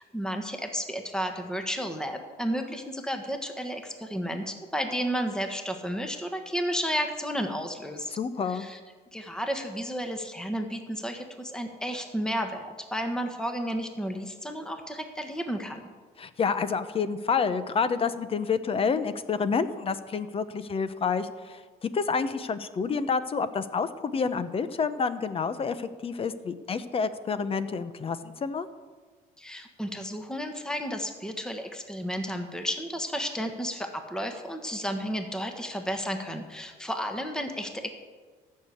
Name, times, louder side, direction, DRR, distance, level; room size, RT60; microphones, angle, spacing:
voice 1, 0.0-8.1 8.5-8.8 9.1-15.8 29.4-37.9, equal, 5° left, 5 dB, 1.4 m, -32 dB
voice 2, 8.1-8.7 16.2-28.7, left 5 dB, 35° left, 13 dB, 0.8 m, -29 dB
14.0 x 6.7 x 8.5 m, 1.5 s
cardioid pair, 110°, 17 cm